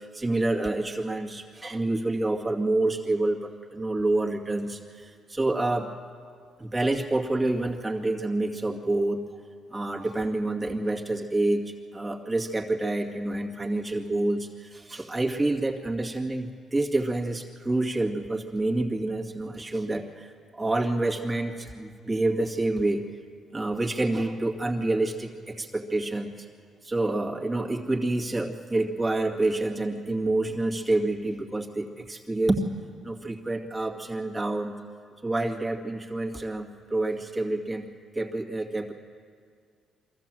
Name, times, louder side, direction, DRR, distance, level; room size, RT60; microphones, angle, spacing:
voice 1, 0.0-5.9 6.6-9.2 9.7-23.0 23.5-26.3 26.8-32.7 33.0-34.8 35.2-37.9 38.1-38.9, right 2 dB, 20° right, 0 dB, 2.2 m, -28 dB
23.5 x 14.5 x 7.7 m, 2.1 s
cardioid pair, 90°, 0 cm